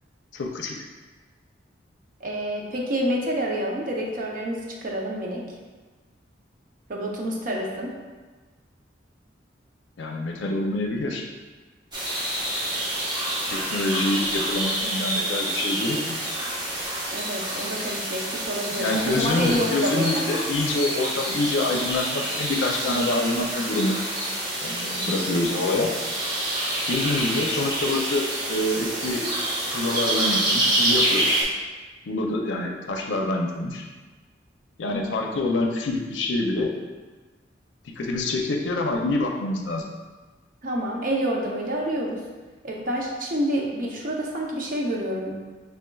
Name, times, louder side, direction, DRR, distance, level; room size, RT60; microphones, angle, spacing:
voice 1, 0.3-0.8 10.0-11.2 13.5-16.2 18.7-24.0 24.6-25.9 26.9-29.3 29.7-31.2 32.1-33.8 34.8-36.7 38.0-39.8, left 2 dB, 85° left, 1 dB, 0.5 m, -26 dB
voice 2, 2.2-5.4 6.9-7.9 17.1-20.2 40.6-42.2 42.6-45.3, equal, 50° right, -1 dB, 0.6 m, -28 dB
sound 1, 11.9-31.4, right 1 dB, 25° right, 1.0 m, -27 dB
6.2 x 3.4 x 2.3 m, 1.3 s
head